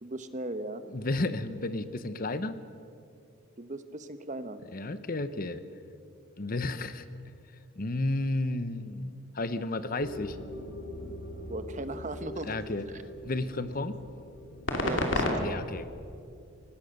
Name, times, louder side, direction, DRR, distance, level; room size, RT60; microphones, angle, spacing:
voice 1, 0.0-0.8 3.6-4.6 11.5-12.6 12.9-13.0 14.8-15.7, right 2 dB, 35° right, 10 dB, 1.0 m, -38 dB
voice 2, 0.9-2.6 4.7-5.6 6.4-7.1 7.8-10.4 12.4-12.8 13.2-14.0 15.4-15.9, left 2 dB, 40° left, 12 dB, 0.8 m, -32 dB
sound 1, 10.0-15.3, left 2 dB, 60° left, 2.6 m, -35 dB
25.0 x 18.5 x 6.6 m, 2.5 s
head